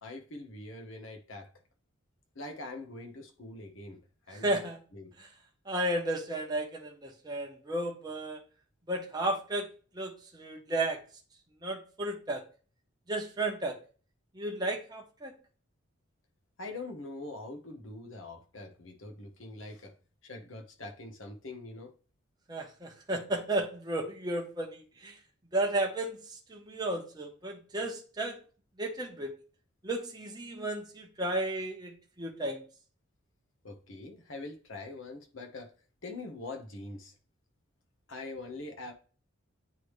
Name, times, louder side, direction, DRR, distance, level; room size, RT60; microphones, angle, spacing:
voice 1, 0.0-1.5 2.3-4.0 4.3-4.6 4.9-5.1 16.6-19.9 20.2-21.9 33.6-35.7 36.0-37.1 38.1-38.9, left 2 dB, 75° left, 1.2 m, -43 dB
voice 2, 4.3-4.8 5.2-5.3 5.7-8.4 8.9-9.7 9.9-11.0 11.6-12.4 13.1-13.8 14.3-15.3 22.5-25.2 25.5-28.4 28.8-29.3 29.8-32.6, right 1 dB, 20° right, 0.9 m, -33 dB
9.3 x 3.2 x 3.2 m
head